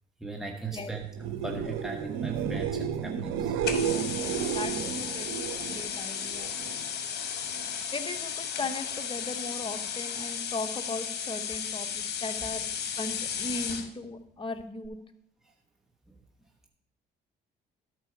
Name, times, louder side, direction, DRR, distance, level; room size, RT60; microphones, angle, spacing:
voice 1, 0.2-3.6 5.0-5.2 16.1-16.2, right 3 dB, ahead, 0 dB, 1.3 m, -38 dB
sound 1, 1.1-6.9 7.2-7.8 14.8-14.9, right 8 dB, 85° right, 0.7 m, -32 dB
sound 2, 3.6-13.9, left 8 dB, 60° left, 1.1 m, -34 dB
voice 2, 4.2-6.5 7.9-12.7 13.0-15.0, left 2 dB, 25° left, 7 dB, 1.0 m, -38 dB
12.5 x 4.6 x 4.6 m, 0.73 s
supercardioid pair, 75°, 20 cm